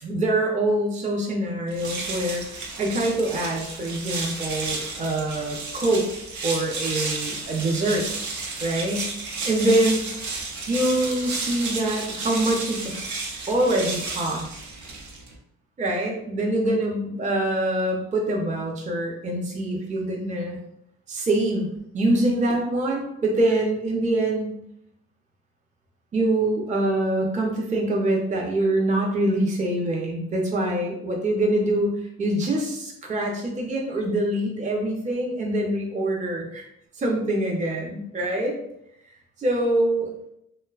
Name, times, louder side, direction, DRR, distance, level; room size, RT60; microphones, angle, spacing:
voice 1, 0.0-6.1 6.4-8.1 8.6-9.1 9.4-10.1 10.7-13.0 13.5-14.6 15.8-20.6 21.1-21.7 21.9-24.6 26.1-36.6 37.0-38.6 39.4-40.1, right 1 dB, 25° right, 0 dB, 0.5 m, -24 dB
sound 1, 1.7-15.4, right 3 dB, 70° right, 0.6 m, -32 dB
2.6 x 2.1 x 2.3 m, 0.77 s
cardioid pair, 90°, 30 cm